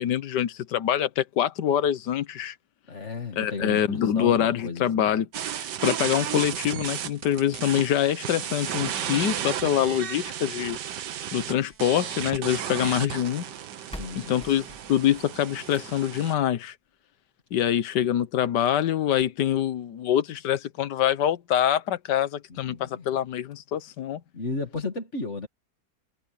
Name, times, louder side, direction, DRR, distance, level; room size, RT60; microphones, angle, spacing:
voice 1, 0.0-2.5 3.4-5.3 5.6-10.8 11.3-13.4 14.1-16.7 17.5-24.2, left 10 dB, 80° left, 1.6 m, -25 dB
voice 2, 2.9-5.1 13.9-14.4 22.5-23.1 24.3-25.5, left 3 dB, 45° left, 2.4 m, -34 dB
sound 1, 5.3-16.3, right 10 dB, 85° right, 1.7 m, -33 dB
sound 2, 11.5-12.7 13.5-13.6 13.9-16.2 17.5-17.6 18.1-18.2 18.5-18.6 19.1-19.3, equal, 5° left, 1.6 m, -46 dB
omnidirectional pair, 1.8 m